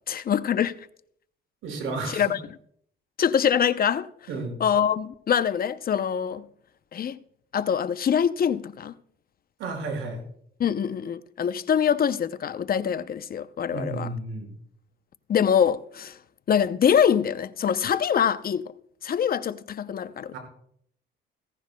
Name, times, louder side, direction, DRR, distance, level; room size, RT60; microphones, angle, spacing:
voice 1, 0.1-0.7 2.1-2.4 3.2-4.1 4.6-6.4 6.9-7.2 7.5-9.0 10.6-14.1 15.3-16.2 16.5-18.7 19.0-20.4, left 8 dB, 50° left, 0.6 m, -24 dB
voice 2, 1.6-2.3 4.3-4.6 9.6-10.2 13.7-14.5 20.3-20.4, right 3 dB, 90° right, 5.4 m, -32 dB
16.5 x 15.5 x 2.2 m
cardioid pair, 90°, 20 cm